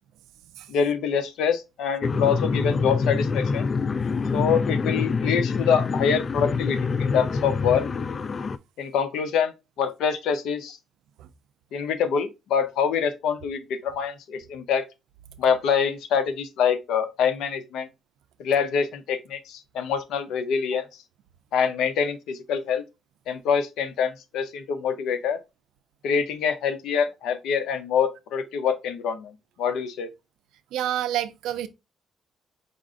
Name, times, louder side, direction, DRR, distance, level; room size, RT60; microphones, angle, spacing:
voice 1, 0.7-3.7 4.3-7.9 8.8-10.8 11.7-14.8 15.4-17.9 18.4-20.8 21.5-22.8 23.3-25.4 26.0-30.1, left 7 dB, 85° left, 0.6 m, -25 dB
sound 1, 2.0-8.6, left 5 dB, 45° left, 0.3 m, -26 dB
voice 2, 30.7-31.7, right 12 dB, 90° right, 0.4 m, -28 dB
5.0 x 2.5 x 3.6 m
cardioid pair, 85°, 0 cm